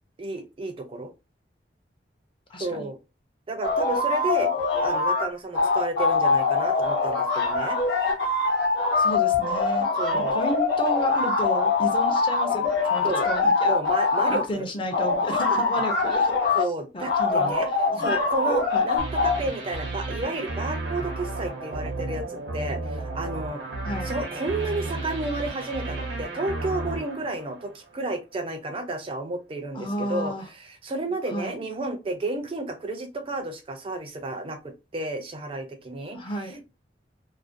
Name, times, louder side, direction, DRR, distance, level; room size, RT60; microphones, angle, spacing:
voice 1, 0.2-1.1 2.6-3.0 3.5-4.5 4.8-7.8 9.9-10.4 13.0-13.3 13.6-14.7 15.6-15.8 16.5-17.7 18.0-23.6 24.0-36.6, right 2 dB, 30° right, 6 dB, 0.4 m, -32 dB
voice 2, 2.5-2.9 9.0-9.9 10.1-13.7 14.3-16.3 16.9-18.1 18.7-18.9 23.8-24.2 29.7-30.5 31.3-31.6 36.1-36.6, equal, 30° left, 4 dB, 0.5 m, -32 dB
sound 1, 3.6-5.3 5.5-14.4 14.9-16.7 17.1-19.4, left 4 dB, 65° left, 0.9 m, -23 dB
sound 2, 19.0-28.0, right 2 dB, 85° right, 0.6 m, -33 dB
2.4 x 2.1 x 2.5 m, 0.27 s
head